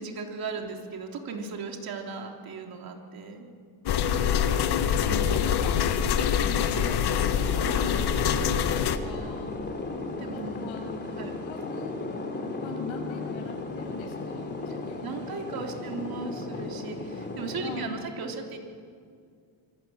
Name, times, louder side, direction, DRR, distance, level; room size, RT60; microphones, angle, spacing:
voice 1, 0.0-3.5 5.1-5.2 6.8-6.9 10.2-10.6 11.2-11.4 14.7-18.6, right 4 dB, 50° right, 2 dB, 3.4 m, -37 dB
voice 2, 3.9-7.1 7.5-8.7 9.0-9.6 10.5-12.0 12.6-15.1 15.7-15.8 17.6-18.0, left 3 dB, 75° left, 2 dB, 7.1 m, -41 dB
sound 1, 3.9-9.0, left 8 dB, 55° left, 1.4 m, -25 dB
sound 2, 7.0-17.9, left 3 dB, 20° left, 3.0 m, -36 dB
26.0 x 23.0 x 8.8 m, 2.2 s
cardioid pair, 170°, 47 cm